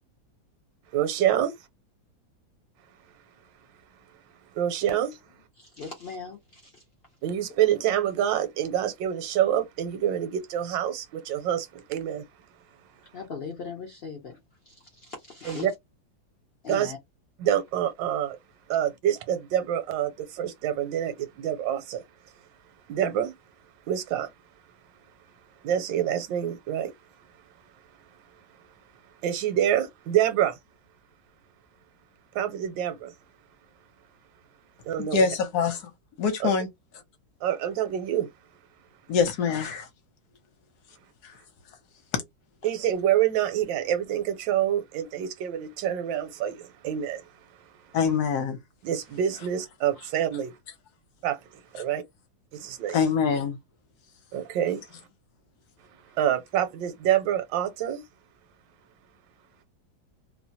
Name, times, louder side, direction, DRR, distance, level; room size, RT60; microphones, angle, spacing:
voice 1, 0.9-1.5 4.5-5.2 7.2-12.2 15.5-15.7 16.7-16.9 17.4-18.4 18.7-22.0 22.9-23.3 23.9-24.3 25.6-26.9 29.2-30.6 32.3-33.1 34.8-35.3 37.4-38.3 42.6-47.3 48.8-50.5 51.2-52.0 52.5-53.0 54.3-54.8 56.1-58.0, right 10 dB, 80° right, 1.3 m, -27 dB
voice 2, 5.6-6.8 13.1-14.4 14.7-15.7 16.6-17.0, left 5 dB, 85° left, 0.5 m, -39 dB
voice 3, 35.0-35.9 36.2-36.7 39.1-39.9 41.2-41.3 42.1-42.2 47.9-48.6 52.9-53.6, left 6 dB, 65° left, 1.2 m, -24 dB
3.0 x 2.1 x 2.7 m
omnidirectional pair, 2.0 m